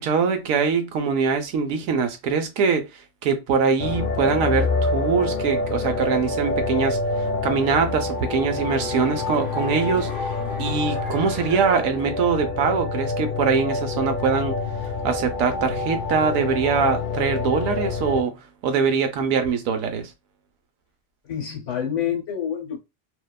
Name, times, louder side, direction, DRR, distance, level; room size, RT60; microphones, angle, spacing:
voice 1, 0.0-2.8 3.2-7.0 7.4-10.3 10.6-14.6 15.0-18.3 18.6-20.1, right 5 dB, 85° right, 1.0 m, -23 dB
sound 1, 3.8-18.2, left 3 dB, 90° left, 0.4 m, -27 dB
sound 2, 7.2-12.7 13.1-13.2, left 2 dB, 20° left, 1.3 m, -40 dB
voice 2, 21.2-22.8, left 9 dB, 70° left, 1.1 m, -27 dB
2.7 x 2.2 x 2.2 m
omnidirectional pair, 1.4 m